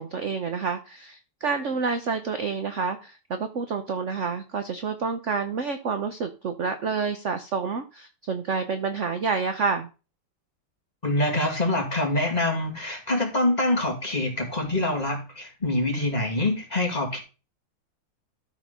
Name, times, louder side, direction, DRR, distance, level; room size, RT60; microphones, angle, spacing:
voice 1, 0.0-9.9, right 5 dB, 55° right, 8 dB, 0.9 m, -28 dB
voice 2, 11.0-17.2, left 1 dB, 20° left, 1 dB, 2.3 m, -25 dB
13.0 x 4.4 x 5.5 m, 0.32 s
omnidirectional pair, 2.3 m